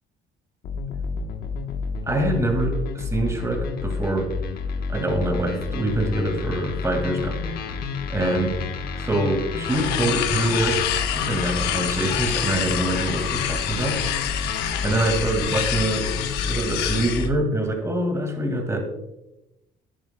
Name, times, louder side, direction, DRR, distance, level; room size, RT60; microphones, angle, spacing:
sound 1, 0.6-17.4, left 4 dB, 65° left, 1.1 m, -30 dB
voice 1, 2.1-4.3 4.9-7.4 8.1-8.5 9.0-10.8 11.1-14.0 14.8-18.8, right 1 dB, 15° right, 4 dB, 2.0 m, -25 dB
sound 2, 9.6-17.3, left 10 dB, 90° left, 0.8 m, -27 dB
10.5 x 10.0 x 2.2 m, 0.93 s
cardioid pair, 110°, 17 cm